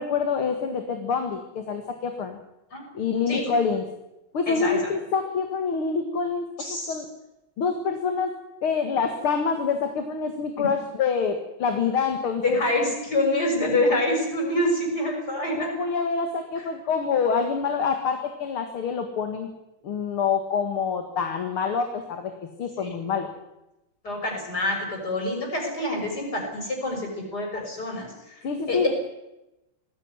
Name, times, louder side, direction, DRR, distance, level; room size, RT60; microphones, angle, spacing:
voice 1, 0.0-2.4 2.9-3.8 4.3-6.5 6.9-7.1 7.6-8.3 8.6-12.6 15.5-19.5 19.8-22.3 22.6-23.3 28.4-28.9, left 5 dB, 90° left, 6 dB, 2.7 m, -26 dB
voice 2, 4.5-4.9 6.6-7.0 10.6-10.7 12.4-15.7 22.8-23.0 24.0-28.4 28.7-28.9, left 1 dB, 50° left, 1 dB, 6.8 m, -26 dB
19.5 x 15.5 x 9.7 m, 0.92 s
omnidirectional pair, 2.3 m